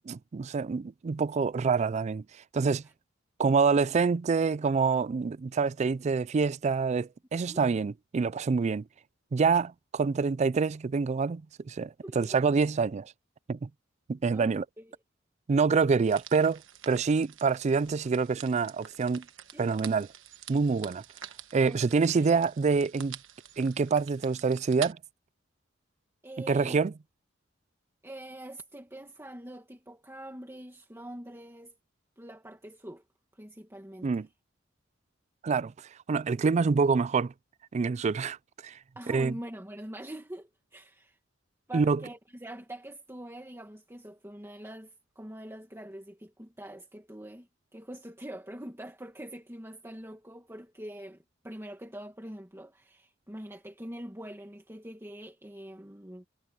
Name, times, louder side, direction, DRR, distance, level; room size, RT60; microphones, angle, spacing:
voice 1, 0.1-2.2 2.5-2.8 3.4-8.8 9.3-13.1 13.5-13.7 14.1-14.6 15.5-19.2 19.6-20.1 20.5-21.0 21.5-23.2 23.6-25.0 26.5-26.9 34.0-34.3 35.4-35.7 36.1-37.3 37.7-38.4 38.6-38.8 39.1-39.3 41.7-42.0, right 5 dB, 35° right, 0.3 m, -26 dB
voice 2, 12.0-12.4 14.3-15.0 19.5-19.7 21.6-21.8 22.1-22.3 26.2-26.8 28.0-31.8 32.2-33.0 33.3-34.1 39.0-41.2 41.7-56.3, right 1 dB, 15° right, 2.0 m, -44 dB
sound 1, 16.0-24.9, right 10 dB, 75° right, 1.3 m, -47 dB
head